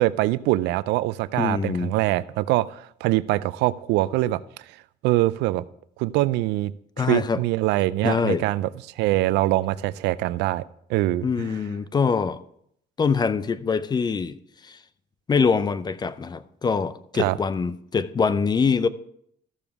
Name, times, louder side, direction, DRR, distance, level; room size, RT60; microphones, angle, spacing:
voice 1, 0.0-4.4 5.0-5.6 6.0-6.7 7.0-8.7 9.0-10.6 10.9-11.5 17.1-17.4, right 17 dB, 90° right, 0.4 m, -23 dB
voice 2, 1.4-1.9 7.0-7.4 8.0-8.4 11.2-12.4 13.0-14.4 14.6-14.8 15.3-18.9, left 5 dB, 25° left, 0.5 m, -24 dB
13.5 x 7.0 x 3.5 m
cardioid pair, 110°, 17 cm